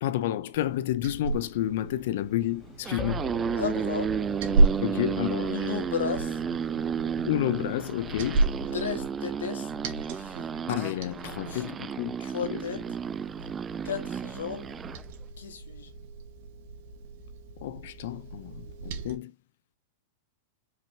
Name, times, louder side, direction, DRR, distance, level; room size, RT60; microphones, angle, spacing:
voice 1, 0.0-3.3 4.8-5.5 7.2-8.5 10.7-12.6 17.6-19.3, left 13 dB, 65° left, 0.8 m, -30 dB
Liquid, 0.5-19.1, right 3 dB, 60° right, 1.9 m, -33 dB
sound 1, 1.1-12.2, left 2 dB, 30° left, 2.3 m, -44 dB
sound 2, 2.7-15.0, right 7 dB, 20° right, 0.4 m, -33 dB
voice 2, 3.6-4.2 5.5-6.4 8.7-9.7 10.1-10.5 11.5-11.6 12.2-12.9 13.8-14.8 15.4-15.9, left 8 dB, 85° left, 2.0 m, -34 dB
6.0 x 5.4 x 2.9 m
hypercardioid pair, 115°, 0 cm